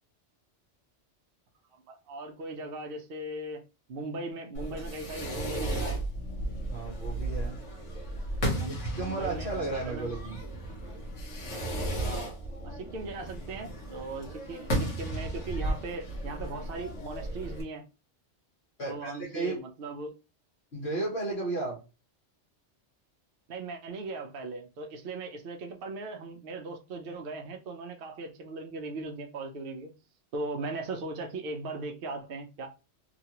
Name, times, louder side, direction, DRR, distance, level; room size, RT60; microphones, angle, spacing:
voice 1, 1.7-3.6 3.9-6.0 8.5-10.1 12.0-12.3 12.6-17.8 18.8-20.1 23.5-29.9 30.3-32.7, right 2 dB, 60° right, 0.7 m, -38 dB
Fireworks, 4.5-17.6, right 1 dB, 75° left, 1.2 m, -34 dB
voice 2, 6.7-7.6 8.6-10.4 18.8-19.6 20.7-21.8, right 3 dB, 60° left, 1.4 m, -34 dB
2.9 x 2.4 x 2.8 m
omnidirectional pair, 1.2 m